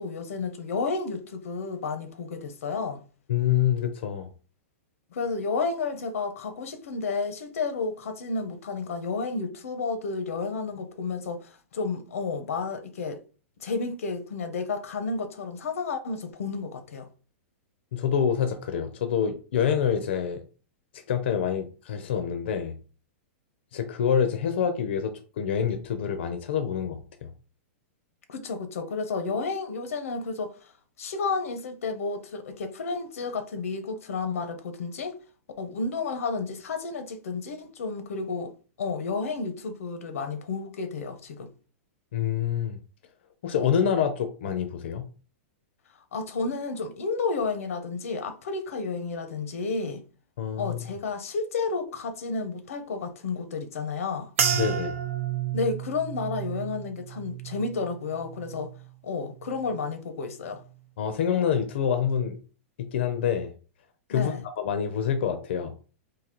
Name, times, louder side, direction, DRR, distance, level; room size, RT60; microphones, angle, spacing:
voice 1, 0.0-3.0 5.1-13.2 13.6-17.1 28.3-30.5 31.0-35.1 35.6-38.5 38.8-41.5 46.1-50.0 50.6-54.3 55.5-58.7 59.0-60.6 64.1-64.4, left 4 dB, 85° left, 0.7 m, -31 dB
voice 2, 3.3-4.3 17.9-20.4 21.1-22.7 23.7-27.3 42.1-42.8 43.4-45.1 50.4-50.8 54.5-54.9 61.0-62.4 62.8-63.5 64.1-65.7, left 8 dB, 55° left, 0.5 m, -26 dB
sound 1, 54.4-58.9 59.3-59.9 60.5-60.7, right 9 dB, 70° right, 0.6 m, -32 dB
3.8 x 2.7 x 3.0 m
supercardioid pair, 175°, 7 cm